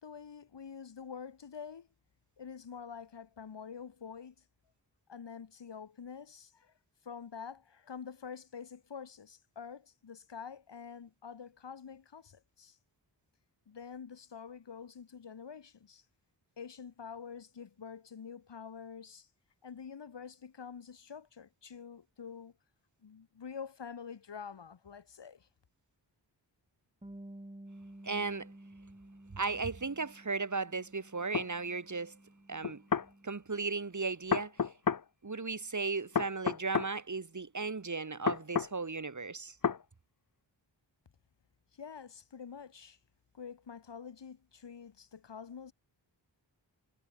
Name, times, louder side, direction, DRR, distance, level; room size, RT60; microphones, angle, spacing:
voice 1, 0.0-1.9 2.4-4.3 5.1-6.7 7.0-12.8 13.7-16.0 16.6-19.3 19.6-22.5 23.0-25.5 41.8-43.0 43.3-45.7, left 6 dB, 70° left, 1.7 m, -47 dB
Bass guitar, 27.0-33.3, right 1 dB, 15° right, 4.6 m, -53 dB
voice 2, 28.0-28.5 29.3-32.2 32.5-32.8 33.2-34.7 35.2-39.6, right 4 dB, 40° right, 2.3 m, -36 dB
sound 1, 31.3-31.5 32.6-33.1 34.3-35.0 36.2-36.9 38.3-38.7 39.6-39.8, left 6 dB, 45° left, 1.0 m, -30 dB
wide cardioid pair, 75°, 45 cm